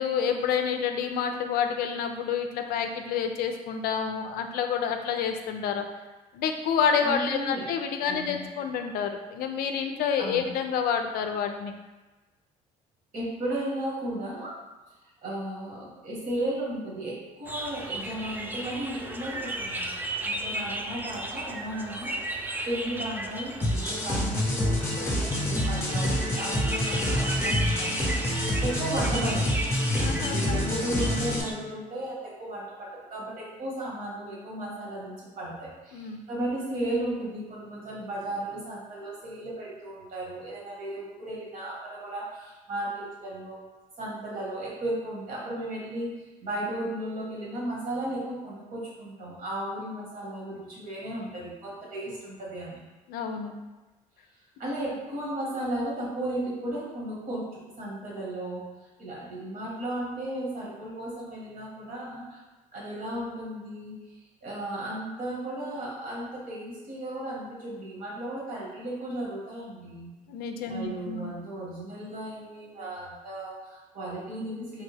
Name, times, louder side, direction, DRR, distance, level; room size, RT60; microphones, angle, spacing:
voice 1, 0.0-5.8 6.3-11.7 30.0-30.6 35.9-36.2 53.1-53.5 70.3-71.3, left 7 dB, 70° left, 5 dB, 0.4 m, -28 dB
voice 2, 7.0-7.7 8.0-8.5 10.2-10.5 13.1-14.6 15.2-19.9 20.2-29.7 30.3-43.6 44.0-52.8 54.6-58.6 59.0-62.4 62.7-70.1 70.7-74.8, right 1 dB, 60° right, -5 dB, 1.5 m, -35 dB
sound 1, 17.4-31.5, right 1 dB, 10° right, 0.4 m, -35 dB
sound 2, 23.6-31.4, left 1 dB, 15° left, 0.8 m, -27 dB
3.4 x 2.2 x 3.3 m, 1.2 s
supercardioid pair, 80°, 16 cm